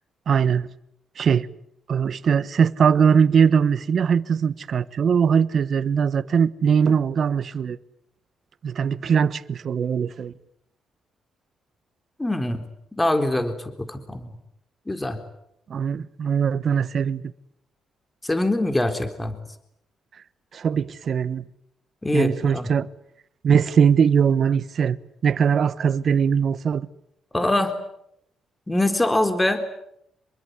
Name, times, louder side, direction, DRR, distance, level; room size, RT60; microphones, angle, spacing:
voice 1, 0.3-0.7 1.2-1.5 1.9-7.8 8.6-10.3 15.7-17.2 20.5-21.4 22.1-22.9 23.4-25.0 25.2-26.9, right 7 dB, 60° right, 1.2 m, -21 dB
voice 2, 12.2-12.6 12.9-14.3 14.9-15.2 18.2-19.4 22.0-22.7 27.3-27.7 28.7-29.6, left 1 dB, 15° left, 3.9 m, -23 dB
27.0 x 22.5 x 9.5 m
hypercardioid pair, 50°, 0 cm